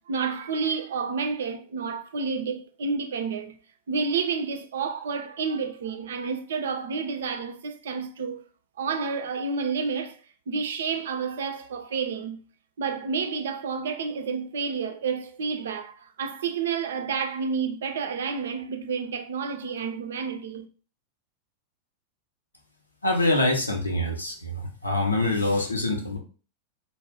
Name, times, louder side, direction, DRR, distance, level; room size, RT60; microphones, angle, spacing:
voice 1, 0.0-3.5 3.9-8.4 8.8-10.2 10.5-12.4 12.8-20.7, right 5 dB, 65° right, 0.4 m, -30 dB
voice 2, 23.0-26.2, left 2 dB, 80° left, 0.6 m, -25 dB
2.4 x 2.1 x 3.4 m
figure-of-eight pair, 90°, 0 cm